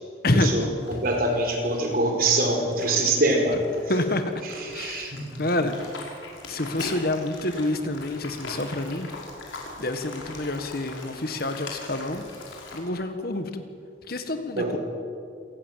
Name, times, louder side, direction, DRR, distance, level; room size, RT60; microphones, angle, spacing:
voice 1, 0.2-0.7 3.9-4.3 4.7-5.7 6.5-9.1 9.8-12.2 12.7-13.6 14.1-14.8, left 1 dB, 50° left, 8 dB, 1.7 m, -27 dB
sound 1, 0.8-12.8, left 2 dB, 90° left, 5.4 m, -40 dB
voice 2, 0.9-3.6 4.4-5.4 14.6-14.8, right 2 dB, 50° right, 2 dB, 5.0 m, -24 dB
27.5 x 18.5 x 7.6 m, 2.3 s
head